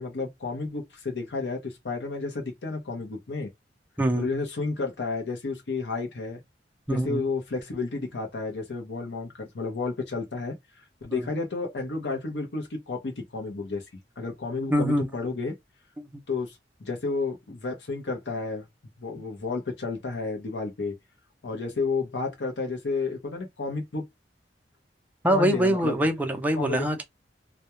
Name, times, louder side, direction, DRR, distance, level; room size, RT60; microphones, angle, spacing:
voice 1, 0.0-3.5 4.2-6.4 6.9-10.5 11.0-13.8 14.2-15.5 16.3-18.6 19.0-21.0 21.4-24.0 25.3-26.0 26.6-26.8, left 3 dB, 70° left, 0.7 m, -31 dB
voice 2, 4.0-4.3 6.9-7.2 11.1-11.2 14.7-15.1 16.0-16.1 25.2-27.0, right 1 dB, 10° right, 0.5 m, -24 dB
2.2 x 2.1 x 2.9 m
head